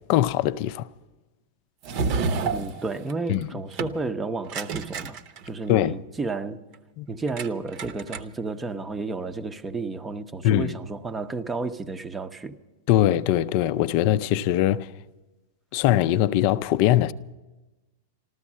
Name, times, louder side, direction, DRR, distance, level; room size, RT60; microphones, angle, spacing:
voice 1, 0.1-0.9 3.3-3.5 5.7-6.0 7.0-7.1 10.4-10.7 12.9-14.9 15.7-17.1, left 12 dB, 50° left, 0.4 m, -21 dB
sound 1, 1.8-3.4 3.7-4.0 4.5-5.7 7.3-7.5 7.7-8.5, right 4 dB, 45° right, 0.9 m, -29 dB
voice 2, 2.4-5.2 5.4-6.6 7.1-12.5, right 3 dB, 15° right, 0.7 m, -32 dB
14.5 x 13.0 x 7.4 m
supercardioid pair, 140°, 0 cm